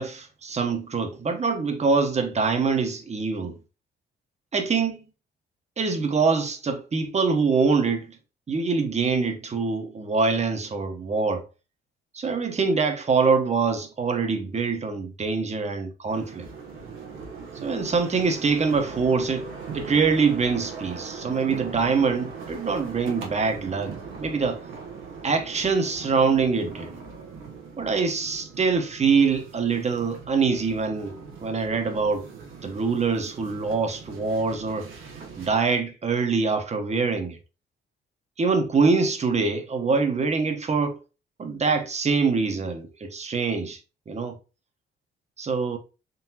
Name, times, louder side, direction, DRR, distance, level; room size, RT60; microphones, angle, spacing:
voice 1, 0.0-3.5 4.5-5.0 5.8-8.1 8.5-11.4 12.1-16.5 17.6-19.5 19.7-23.9 24.2-24.6 25.2-26.9 27.8-31.1 31.4-32.2 32.6-34.9 35.4-37.4 38.4-41.0 41.4-43.8 44.1-44.4 45.4-45.8, right 4 dB, 35° right, 1.0 m, -24 dB
sound 1, 16.1-35.5, right 5 dB, 85° right, 1.0 m, -40 dB
3.9 x 3.4 x 2.8 m
cardioid pair, 90°, 20 cm